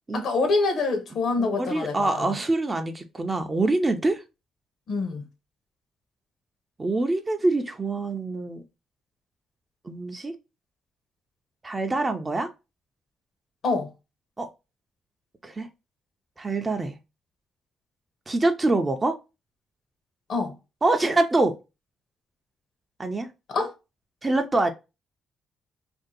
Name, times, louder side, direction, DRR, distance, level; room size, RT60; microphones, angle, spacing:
voice 1, 0.1-2.4 4.9-5.2 13.6-13.9 20.3-20.5 23.5-23.7, left 3 dB, 60° left, 0.8 m, -26 dB
voice 2, 1.4-4.2 6.8-8.6 9.8-10.3 11.6-12.5 14.4-14.5 15.4-15.7 16.4-17.0 18.3-19.2 20.8-21.5 23.0-23.3 24.2-24.7, right 2 dB, 20° right, 0.4 m, -25 dB
2.6 x 2.1 x 3.9 m
cardioid pair, 120°, 0 cm